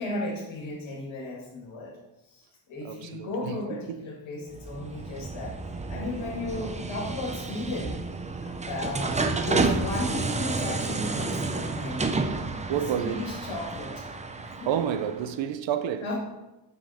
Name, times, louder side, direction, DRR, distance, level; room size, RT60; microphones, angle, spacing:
voice 1, 0.0-2.0 2.2-8.0 8.3-12.1 12.7-14.1 14.5-14.7 16.0-16.2, left 2 dB, 85° left, 1.9 m, -35 dB
voice 2, 2.8-3.8 12.7-13.3 14.5-16.1, right 9 dB, 75° right, 0.7 m, -30 dB
sound 1, 4.5-15.3, right 3 dB, 15° right, 0.4 m, -31 dB
6.8 x 6.1 x 4.2 m
wide cardioid pair, 140°, 45 cm